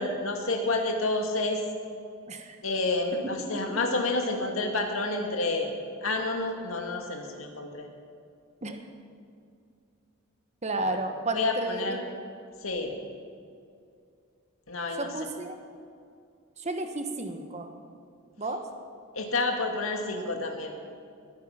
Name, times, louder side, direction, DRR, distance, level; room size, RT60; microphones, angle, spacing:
voice 1, 0.0-1.6 2.6-5.7 6.0-7.9 11.3-12.0 12.6-12.9 14.7-15.1 19.1-20.7, left 2 dB, 70° left, 3 dB, 2.1 m, -29 dB
voice 2, 10.6-12.0 15.0-15.5 16.6-17.7 18.4-18.6, right 2 dB, 30° right, 6 dB, 1.2 m, -32 dB
20.5 x 9.6 x 5.7 m, 2.4 s
head